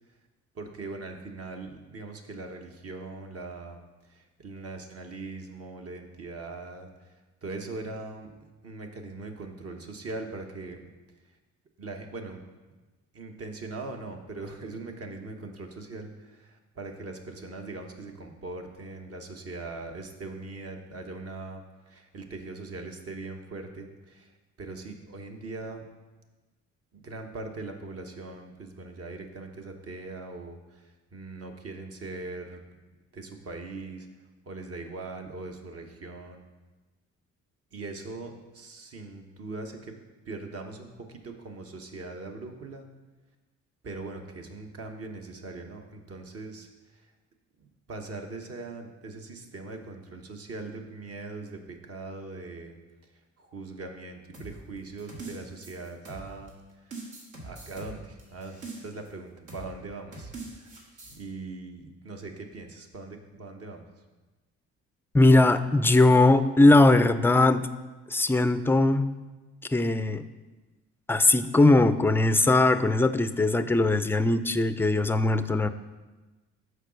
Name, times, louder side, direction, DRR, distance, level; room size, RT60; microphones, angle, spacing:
voice 1, 0.5-8.3 8.6-10.8 11.2-11.4 11.8-12.4 13.1-25.9 26.9-32.6 33.1-34.1 34.5-36.4 37.7-40.0 40.2-42.9 43.8-47.1 47.6-52.8 53.0-57.0 57.4-60.7 61.1-63.9, right 3 dB, 50° right, 4 dB, 1.2 m, -41 dB
sound 1, 54.3-56.5 56.9-59.1 59.5-59.7 60.1-61.2, right 3 dB, 80° right, 1.9 m, -42 dB
voice 2, 65.1-67.7 68.1-69.1 69.7-70.2 71.1-75.7, left 2 dB, 10° left, 11 dB, 0.3 m, -20 dB
6.5 x 4.8 x 6.3 m, 1.2 s
cardioid pair, 90°, 30 cm